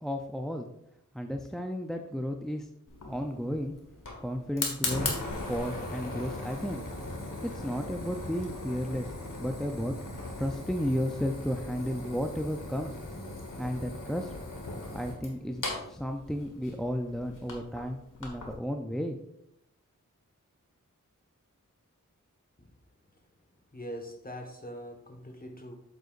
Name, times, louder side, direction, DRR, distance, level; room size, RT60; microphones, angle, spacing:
voice 1, 0.0-0.7 1.1-2.7 3.0-3.7 4.2-5.1 5.5-6.8 7.4-10.0 10.4-12.9 13.6-14.3 14.9-19.2, equal, ahead, 4 dB, 0.5 m, -33 dB
Fire, 2.9-18.5, left 2 dB, 85° left, 1.5 m, -38 dB
voice 2, 23.7-25.8, equal, 30° left, 4 dB, 1.4 m, -42 dB
8.1 x 7.8 x 2.5 m, 0.80 s
wide cardioid pair, 60°, 31 cm